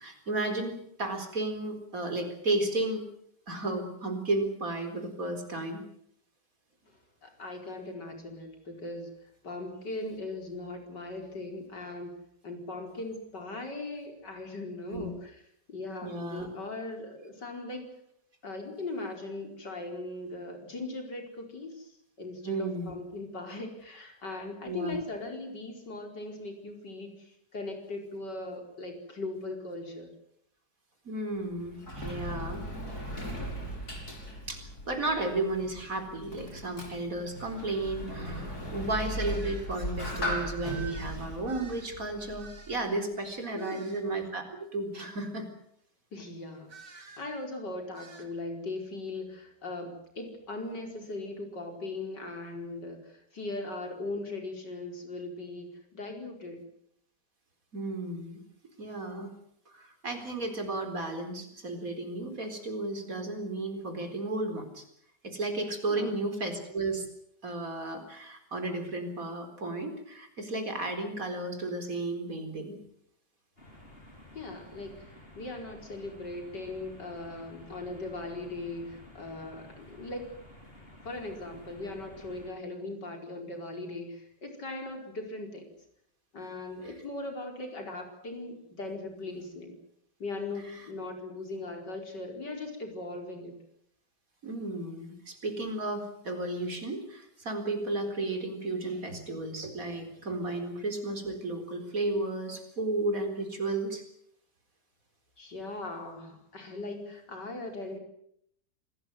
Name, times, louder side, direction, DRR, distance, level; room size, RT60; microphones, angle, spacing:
voice 1, 0.0-3.1 3.5-5.8 14.9-15.1 16.0-16.5 22.4-22.9 24.6-25.0 31.0-32.6 34.5-45.5 57.7-58.4 58.8-59.3 59.7-64.8 65.2-67.1 67.4-72.8 86.8-86.9 94.4-104.0, right 2 dB, 55° right, 6 dB, 4.6 m, -33 dB
voice 2, 7.2-9.1 9.4-12.1 12.4-15.4 15.7-17.9 18.4-30.1 43.5-44.0 46.1-55.7 55.9-56.6 65.9-66.2 74.3-80.3 81.0-85.7 86.3-89.8 90.2-93.6 105.4-108.0, left 2 dB, 85° left, 4 dB, 5.4 m, -39 dB
Sliding door, 31.4-42.7, equal, 60° left, 6.2 m, -38 dB
sound 1, 39.2-39.7 40.6-43.0 43.6-44.1 46.7-47.3 47.9-48.3, right 5 dB, 90° right, 3.4 m, -49 dB
sound 2, 73.6-82.5, left 1 dB, 35° left, 7.6 m, -52 dB
26.5 x 18.5 x 8.0 m, 0.70 s
omnidirectional pair, 1.8 m